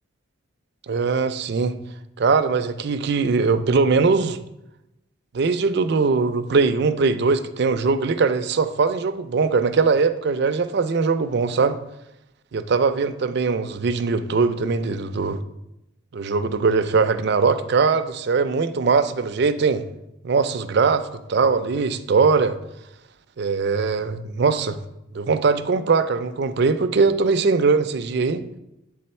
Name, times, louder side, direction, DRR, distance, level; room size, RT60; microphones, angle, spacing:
voice 1, 0.9-1.7 2.2-4.4 5.3-11.8 12.5-15.4 16.1-19.8 20.2-22.5 23.4-24.8 25.1-28.4, right 4 dB, 55° right, 0.4 m, -21 dB
7.7 x 3.7 x 4.3 m
head